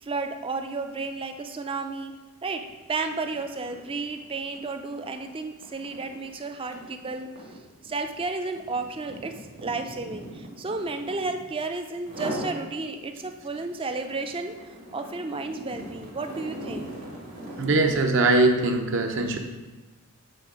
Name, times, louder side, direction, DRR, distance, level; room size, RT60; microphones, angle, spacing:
voice 1, 0.0-2.1 2.4-7.3 7.8-16.9, right 3 dB, 25° right, 7 dB, 0.4 m, -32 dB
sound 1, 2.6-2.8 3.1-11.5 12.0-12.6 13.0-18.2, equal, 75° right, 1.9 m, -40 dB
voice 2, 17.6-19.4, right 2 dB, 55° right, 4 dB, 0.7 m, -21 dB
7.7 x 3.7 x 4.8 m, 1.2 s
head